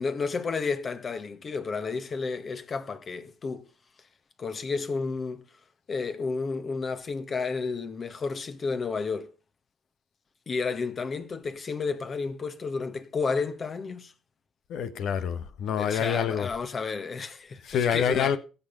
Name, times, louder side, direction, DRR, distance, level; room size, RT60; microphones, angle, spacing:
voice 1, 0.0-3.7 4.4-5.4 5.9-9.3 10.5-14.1 15.8-18.4, left 4 dB, 40° left, 1.8 m, -31 dB
voice 2, 14.7-16.5 17.6-18.4, left 8 dB, 70° left, 1.3 m, -26 dB
16.0 x 6.9 x 5.5 m
hypercardioid pair, 60°, 0 cm